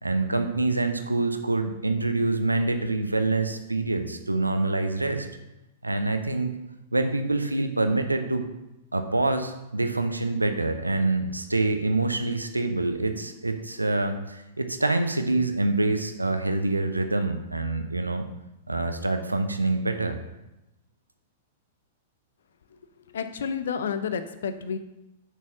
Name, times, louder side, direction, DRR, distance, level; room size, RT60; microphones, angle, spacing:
voice 1, 0.0-5.3 5.8-6.5 6.9-8.5 8.9-18.3 18.7-20.2, right 2 dB, 85° right, 7 dB, 0.6 m, -26 dB
voice 2, 22.7-24.8, left 6 dB, 60° left, 10 dB, 0.6 m, -31 dB
7.0 x 4.6 x 5.9 m, 0.93 s
figure-of-eight pair, 100°, 0 cm